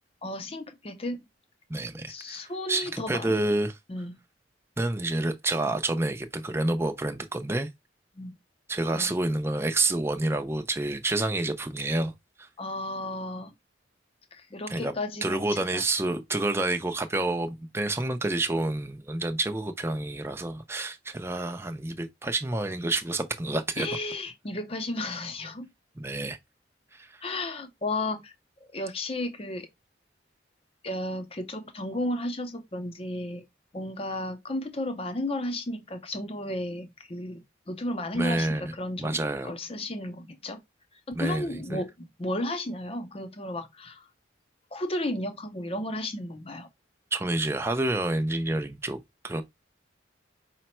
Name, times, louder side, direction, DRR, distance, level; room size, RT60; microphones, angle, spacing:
voice 1, 0.2-1.2 2.1-3.5 3.9-4.2 8.2-8.4 8.9-9.1 12.6-13.5 14.3-15.8 23.8-25.7 27.2-28.3 28.7-29.7 30.8-33.4 33.7-39.2 39.4-40.6 41.1-44.1 44.7-46.7, left 1 dB, 30° left, 0.6 m, -33 dB
voice 2, 1.7-3.8 4.8-7.7 8.7-12.1 12.4-12.5 14.7-14.9 15.2-23.9 26.0-26.4 26.9-27.2 38.1-38.7 39.0-39.5 41.1-41.8 47.1-49.4, right 2 dB, 15° right, 0.5 m, -28 dB
5.0 x 2.1 x 4.3 m
head